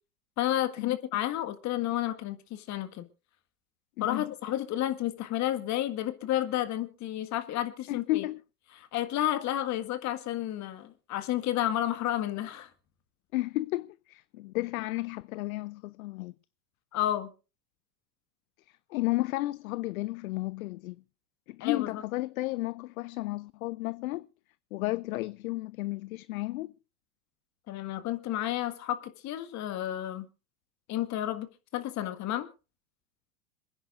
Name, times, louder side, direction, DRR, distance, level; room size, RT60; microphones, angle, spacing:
voice 1, 0.4-3.1 4.0-8.2 8.8-12.7 16.9-17.3 21.6-21.9 27.7-30.3 30.9-32.5, left 13 dB, 35° left, 1.8 m, -31 dB
voice 2, 7.9-8.4 13.3-16.3 18.7-21.0 21.5-24.3 24.7-26.7, left 19 dB, 60° left, 0.6 m, -33 dB
27.0 x 10.0 x 2.5 m
hypercardioid pair, 100°, 47 cm